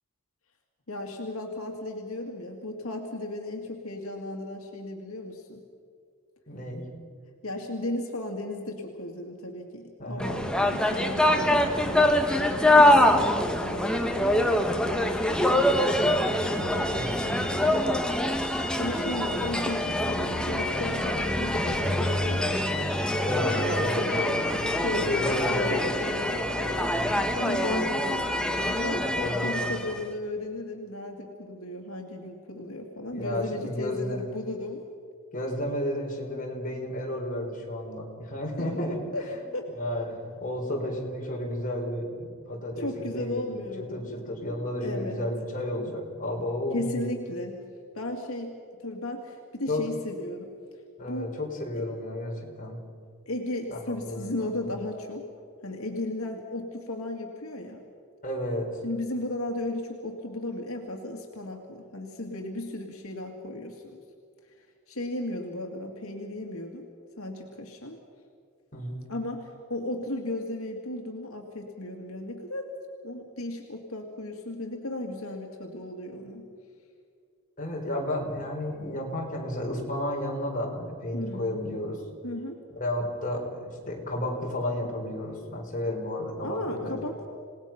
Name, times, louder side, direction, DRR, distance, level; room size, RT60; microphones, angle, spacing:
voice 1, 0.9-5.6 7.4-18.0 18.8-22.6 23.6-24.1 24.8-27.0 27.3-34.8 38.6-39.2 39.5-39.7 42.8-44.2 44.8-45.3 46.7-47.6 47.9-50.5 51.1-51.3 51.7-51.9 53.3-55.3 55.6-57.8 58.8-64.0 64.6-66.9 67.2-68.0 69.1-72.7 73.0-76.5 81.1-81.5 82.2-82.6 86.4-87.3, left 1 dB, 80° left, 2 dB, 2.2 m, -35 dB
voice 2, 6.5-6.9 10.0-10.4 16.9-17.2 23.2-24.4 25.1-25.7 26.9-27.2 29.2-29.7 33.1-34.2 35.3-39.0 39.3-39.4 39.8-43.6 43.9-47.0 49.7-49.8 51.0-52.8 53.7-53.8 54.0-54.5 58.2-58.7 68.7-69.1 77.6-82.0 82.8-86.9, left 1 dB, 40° left, -1 dB, 4.2 m, -32 dB
sound 1, 10.2-30.0, left 1 dB, 5° left, 1.5 m, -25 dB
27.5 x 18.5 x 5.9 m, 2.3 s
head